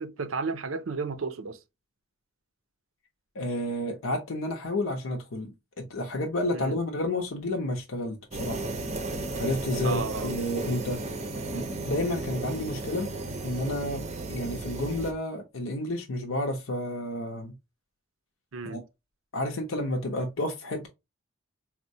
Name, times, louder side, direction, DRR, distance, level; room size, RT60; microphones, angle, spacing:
voice 1, 0.0-1.6 6.5-6.8 9.8-10.3 18.5-18.8, right 4 dB, 85° right, 0.6 m, -33 dB
voice 2, 3.3-8.7 9.4-11.0 11.5-13.1 13.4-17.5 18.6-18.8 19.3-20.9, left 1 dB, 90° left, 0.7 m, -31 dB
sound 1, 8.3-15.1, right 2 dB, 35° right, 0.5 m, -34 dB
4.2 x 2.1 x 2.6 m
head